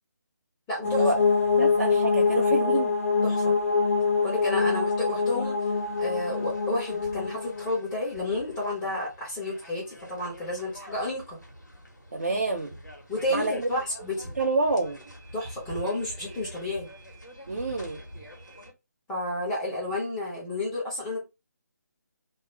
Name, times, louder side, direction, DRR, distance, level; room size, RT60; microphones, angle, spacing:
voice 1, 0.7-1.1 3.2-3.5 4.2-5.7 6.0-11.4 13.1-14.3 15.3-16.9 19.1-21.3, left 1 dB, 10° left, 0.7 m, -31 dB
sound 1, 0.8-7.7, left 4 dB, 50° left, 0.3 m, -24 dB
voice 2, 1.6-3.0 12.1-12.8 13.3-13.5 14.4-15.0 17.5-18.0, right 2 dB, 50° right, 0.5 m, -27 dB
sound 2, 5.7-18.7, equal, 90° left, 1.0 m, -46 dB
2.3 x 2.0 x 3.0 m
figure-of-eight pair, 150°, 10 cm